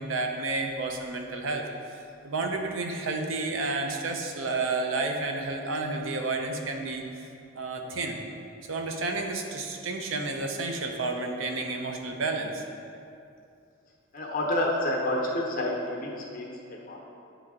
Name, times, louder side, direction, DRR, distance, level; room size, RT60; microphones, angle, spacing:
voice 1, 0.0-1.7 1.9-7.0 7.6-8.2 8.7-12.6, right 3 dB, 85° right, 3 dB, 0.7 m, -31 dB
voice 2, 14.1-17.0, left 1 dB, 45° left, -2 dB, 0.9 m, -29 dB
9.2 x 3.3 x 3.7 m, 2.5 s
head